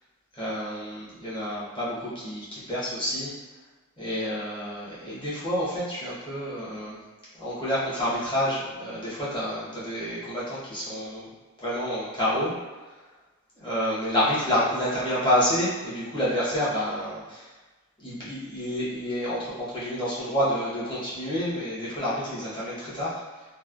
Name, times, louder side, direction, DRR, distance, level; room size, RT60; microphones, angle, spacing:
voice 1, 0.3-3.3 4.0-7.0 7.3-11.3 11.6-12.5 13.5-17.5 18.0-23.2, equal, 25° left, -9 dB, 0.9 m, -28 dB
3.1 x 2.2 x 2.4 m, 1.2 s
head